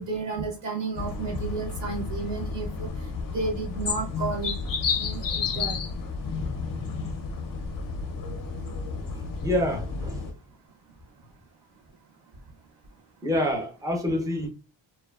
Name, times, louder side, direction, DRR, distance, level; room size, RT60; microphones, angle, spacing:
voice 1, 0.0-2.9 3.3-4.5 5.0-5.8, right 4 dB, 65° right, 0.7 m, -32 dB
sound 1, 0.9-10.3, left 4 dB, 45° left, 0.5 m, -31 dB
voice 2, 9.4-10.3 13.2-14.5, left 1 dB, 10° right, 0.5 m, -27 dB
2.6 x 2.2 x 2.2 m
wide cardioid pair, 130°, 47 cm